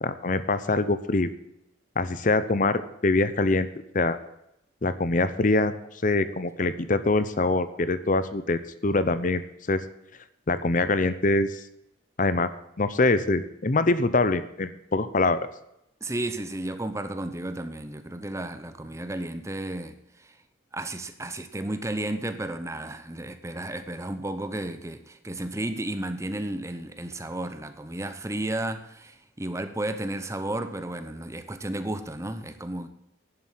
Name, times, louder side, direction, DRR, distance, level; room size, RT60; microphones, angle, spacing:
voice 1, 0.0-1.3 2.0-3.7 3.9-4.2 4.8-9.8 10.5-11.6 12.2-12.5 12.8-15.4, left 2 dB, 40° left, 0.7 m, -24 dB
voice 2, 16.0-20.4 20.7-32.9, right 1 dB, 15° right, 0.8 m, -33 dB
11.0 x 7.5 x 7.5 m
head